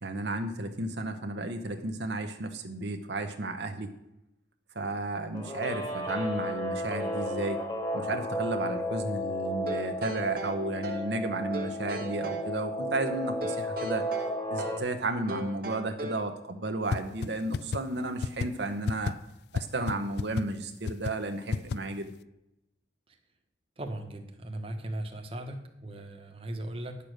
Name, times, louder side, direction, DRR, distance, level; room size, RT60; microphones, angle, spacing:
voice 1, 0.0-3.9 4.7-7.6 7.9-14.1 14.5-19.1 19.5-22.1, right 2 dB, 70° right, 6 dB, 0.9 m, -33 dB
Guitar, 5.3-14.8, equal, 25° left, 1.8 m, -33 dB
sound 1, 9.7-11.1 11.5-12.5 13.4-14.9 15.3-16.3, right 1 dB, 55° right, 1.5 m, -38 dB
sound 2, 16.9-17.0 17.2-17.3 17.5-17.8 18.2-18.5 18.9-19.1 19.5-19.6 19.9-20.0 20.2-20.4 20.9-21.1 21.5-21.8, left 5 dB, 60° left, 0.3 m, -28 dB
voice 2, 23.8-27.0, right 1 dB, 30° right, 4 dB, 1.2 m, -38 dB
10.5 x 6.9 x 6.4 m, 0.87 s
head